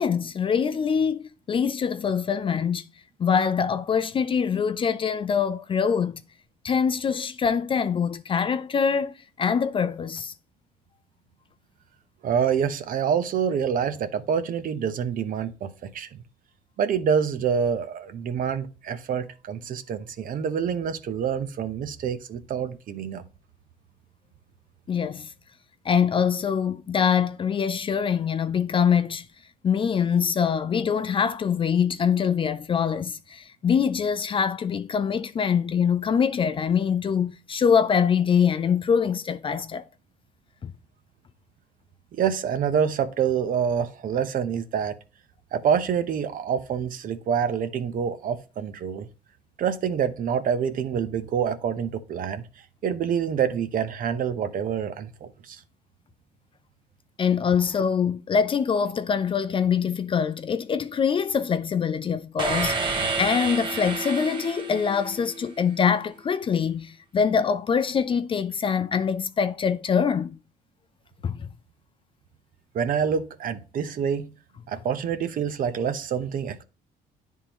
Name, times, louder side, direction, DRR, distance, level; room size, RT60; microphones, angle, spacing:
voice 1, 0.0-2.8 3.2-6.2 6.6-10.3 24.9-25.3 25.9-29.2 29.6-39.8 40.6-40.7 57.2-70.4 71.2-71.4, left 7 dB, 30° left, 0.4 m, -24 dB
voice 2, 12.2-16.1 16.8-23.2 42.1-44.9 45.5-49.1 49.6-52.4 52.8-55.6 72.7-74.3 74.7-76.6, right 7 dB, 55° right, 0.8 m, -26 dB
sound 1, 62.4-65.5, right 4 dB, 30° right, 1.1 m, -29 dB
10.0 x 3.7 x 3.0 m
cardioid pair, 110°, 17 cm